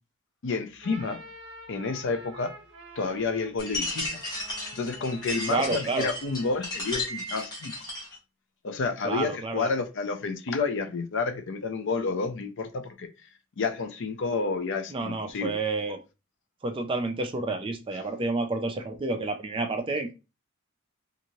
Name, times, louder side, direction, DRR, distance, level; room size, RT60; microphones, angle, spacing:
voice 1, 0.4-1.2 1.7-2.5 3.0-4.2 4.7-7.7 8.6-13.1 13.6-15.5, left 4 dB, 55° left, 0.4 m, -30 dB
sound 1, 0.7-6.7, right 2 dB, 50° right, 0.7 m, -48 dB
sound 2, 3.6-8.2, left 2 dB, 20° left, 1.1 m, -34 dB
voice 2, 5.5-6.1 9.0-9.7 14.9-16.0 16.6-20.1, right 3 dB, 25° right, 0.3 m, -29 dB
2.6 x 2.5 x 2.9 m
head